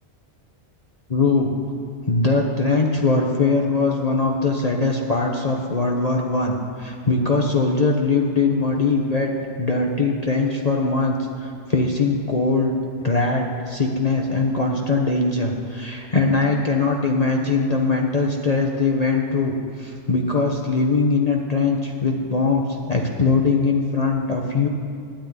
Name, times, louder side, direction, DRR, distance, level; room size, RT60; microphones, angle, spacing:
voice 1, 1.1-1.5 2.0-9.3 9.6-11.2 11.4-12.8 13.0-24.7, left 3 dB, 35° left, 0 dB, 1.2 m, -21 dB
13.0 x 9.7 x 9.6 m, 2.5 s
omnidirectional pair, 1.2 m